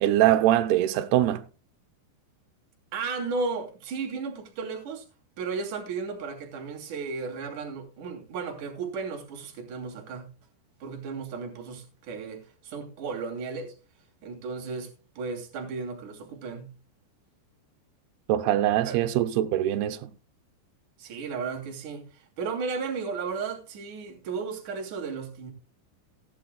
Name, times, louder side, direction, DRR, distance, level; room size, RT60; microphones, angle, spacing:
voice 1, 0.0-1.4 18.3-20.1, right 13 dB, 75° right, 2.4 m, -23 dB
voice 2, 2.9-5.1 5.4-10.3 10.8-13.7 14.2-16.7 18.8-19.0 21.0-25.5, right 4 dB, 45° right, 3.8 m, -34 dB
18.0 x 11.0 x 2.3 m
omnidirectional pair, 5.3 m